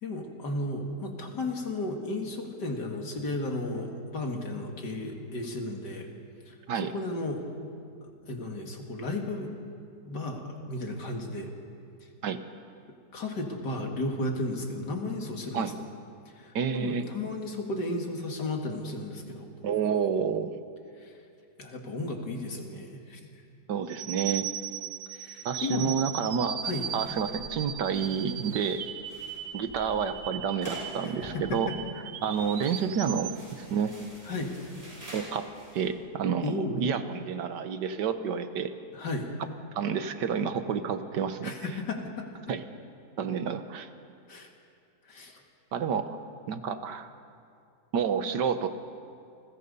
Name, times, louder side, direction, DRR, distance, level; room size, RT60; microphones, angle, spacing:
voice 1, 0.0-6.1 6.5-6.6 6.8-7.4 8.0-9.5 10.1-11.5 13.1-15.7 16.4-19.5 21.0-21.1 21.6-23.3 25.1-25.9 26.6-26.9 31.3-31.7 34.3-34.5 36.4-36.8 38.9-39.3 41.4-42.3 44.3-44.5 45.1-45.4, left 2 dB, 75° left, 2 dB, 2.9 m, -34 dB
voice 2, 16.5-17.0 19.6-20.5 23.7-24.5 25.4-26.6 26.9-28.8 29.5-31.7 32.2-33.9 35.1-35.5 35.7-38.7 39.7-41.5 42.5-42.6 43.2-43.9 45.7-46.2 46.5-47.1 47.9-48.7, right 7 dB, 80° right, 10 dB, 1.7 m, -29 dB
sound 1, 24.0-33.4, right 9 dB, 60° right, 1.4 m, -38 dB
sound 2, 26.6-35.9, right 1 dB, 30° right, 6.9 m, -47 dB
29.0 x 21.0 x 5.5 m, 2.4 s
omnidirectional pair, 1.8 m